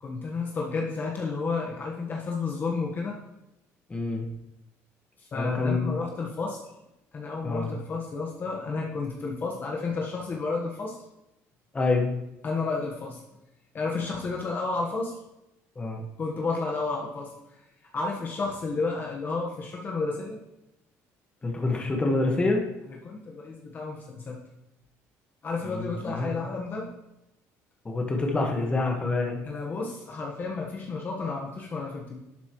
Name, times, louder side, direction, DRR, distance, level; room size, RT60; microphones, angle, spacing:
voice 1, 0.0-3.2 5.2-6.6 7.1-11.0 12.4-13.2 13.7-15.2 16.2-17.3 17.9-20.4 23.0-24.4 25.4-26.9 29.4-32.2, left 4 dB, 35° left, -1 dB, 1.4 m, -31 dB
voice 2, 3.9-4.3 5.3-5.9 7.4-7.7 11.7-12.1 15.7-16.0 21.4-22.6 25.6-26.3 27.8-29.4, left 3 dB, 20° left, 1 dB, 1.6 m, -26 dB
12.0 x 8.2 x 3.2 m, 0.89 s
cardioid pair, 130°, 6 cm